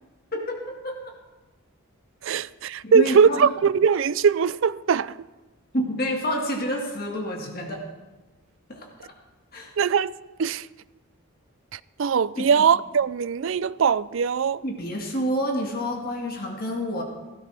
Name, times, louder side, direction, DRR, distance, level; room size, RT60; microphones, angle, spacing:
voice 1, 0.3-1.1 2.8-3.5 5.7-7.8 8.7-9.1 9.5-9.7 12.4-12.5 14.6-17.0, equal, 45° left, 1.9 m, -28 dB
voice 2, 2.2-5.1 9.8-10.1 10.4-10.7 11.7-14.6, right 6 dB, 60° right, 0.4 m, -21 dB
17.0 x 15.0 x 3.4 m
head